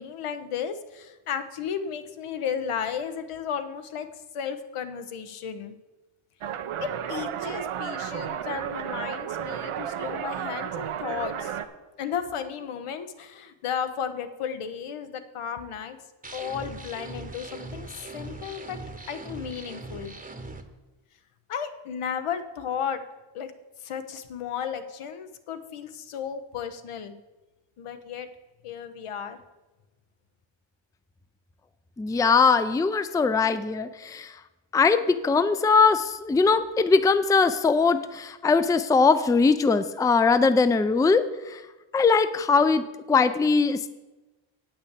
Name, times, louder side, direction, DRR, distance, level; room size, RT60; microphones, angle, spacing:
voice 1, 0.0-5.7 7.1-11.6 12.0-16.0 16.3-18.8 19.1-20.2 21.5-23.0 23.3-23.5 23.8-27.1 27.8-28.3 28.6-29.4, left 7 dB, 85° left, 9 dB, 1.1 m, -34 dB
sound 1, 6.4-11.7, right 9 dB, 85° right, 0.8 m, -32 dB
sound 2, 16.2-20.6, right 2 dB, 15° right, 0.9 m, -40 dB
voice 2, 32.0-34.3 34.7-41.6 41.9-43.9, left 4 dB, 10° left, 11 dB, 0.4 m, -21 dB
8.7 x 6.0 x 8.2 m, 1.1 s
wide cardioid pair, 110°, 49 cm